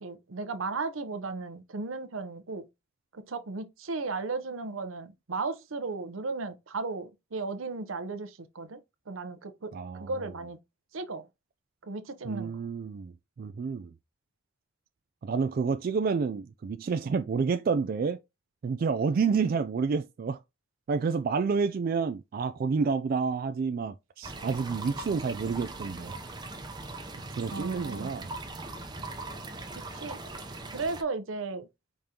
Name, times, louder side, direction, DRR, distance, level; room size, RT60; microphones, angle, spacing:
voice 1, 0.0-2.7 3.1-8.8 9.1-9.7 10.0-10.6 10.9-11.3 11.8-12.6 27.5-28.1 29.7-30.2 30.7-31.7, right 3 dB, 85° right, 0.7 m, -35 dB
voice 2, 9.7-10.1 12.2-13.1 13.4-13.9 15.2-18.2 18.6-20.4 20.9-26.1 27.3-28.3, right 5 dB, 45° right, 0.3 m, -29 dB
sound 1, 24.2-31.0, right 2 dB, 20° right, 0.6 m, -40 dB
5.2 x 3.6 x 2.8 m
head